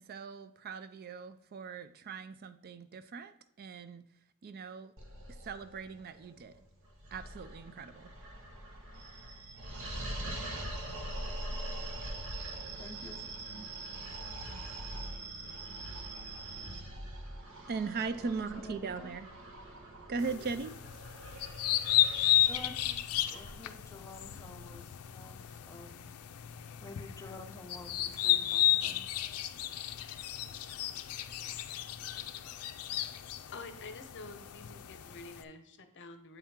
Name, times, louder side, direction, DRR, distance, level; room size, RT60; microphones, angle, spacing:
voice 1, 0.0-4.0 4.4-4.9 5.4-6.5 7.1-8.1 17.7-19.3 20.1-20.7, right 4 dB, 45° right, 11 dB, 0.4 m, -39 dB
sound 1, 5.0-24.6, equal, 60° right, 1.2 m, -44 dB
sound 2, 8.9-16.8, right 4 dB, 90° right, 0.9 m, -46 dB
voice 2, 12.8-13.7 18.2-19.1 22.4-26.0 26.8-29.1, left 1 dB, 15° left, 2 dB, 0.8 m, -50 dB
sound 3, 20.2-35.4, left 13 dB, 80° left, 0.4 m, -33 dB
voice 3, 33.5-36.4, left 3 dB, 55° left, 8 dB, 0.8 m, -48 dB
8.1 x 3.6 x 4.3 m, 0.81 s
head